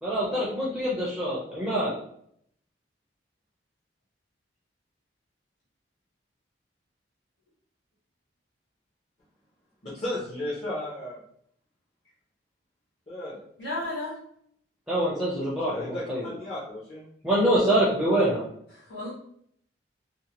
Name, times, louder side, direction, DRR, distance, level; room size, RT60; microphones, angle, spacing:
voice 1, 0.0-1.9 14.9-16.3 17.2-18.4, right 1 dB, 5° right, -7 dB, 0.5 m, -25 dB
voice 2, 9.8-11.2 13.1-13.4 15.7-17.1, left 1 dB, 35° left, -9 dB, 0.8 m, -34 dB
voice 3, 13.6-14.1 18.7-19.1, left 2 dB, 70° left, -7 dB, 1.4 m, -33 dB
2.7 x 2.1 x 2.9 m, 0.67 s
head